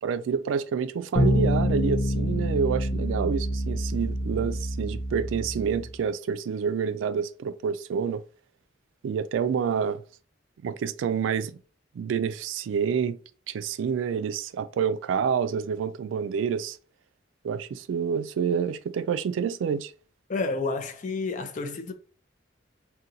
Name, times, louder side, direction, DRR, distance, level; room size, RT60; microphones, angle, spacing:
voice 1, 0.0-8.2 9.0-10.0 10.6-11.6 11.9-13.2 13.5-16.8 17.4-19.9, right 7 dB, 85° right, 0.3 m, -28 dB
sound 1, 1.1-5.9, equal, 75° left, 0.7 m, -27 dB
voice 2, 20.3-21.9, left 3 dB, 40° left, 0.5 m, -30 dB
2.7 x 2.2 x 3.8 m
head